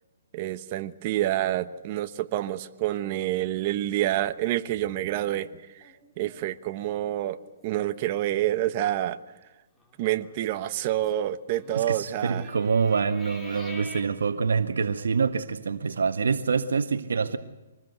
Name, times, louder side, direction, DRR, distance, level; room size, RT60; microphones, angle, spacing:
voice 1, 0.3-5.5 6.2-7.4 7.6-9.2 10.0-12.5, right 13 dB, 35° right, 1.1 m, -27 dB
sound 1, 5.3-7.0 7.4-7.5 7.8-8.2 8.6-8.9 9.8-14.0, left 2 dB, 5° left, 2.8 m, -48 dB
voice 2, 11.7-17.4, right 5 dB, 90° right, 1.5 m, -26 dB
25.5 x 20.0 x 8.1 m
hypercardioid pair, 160°, 0 cm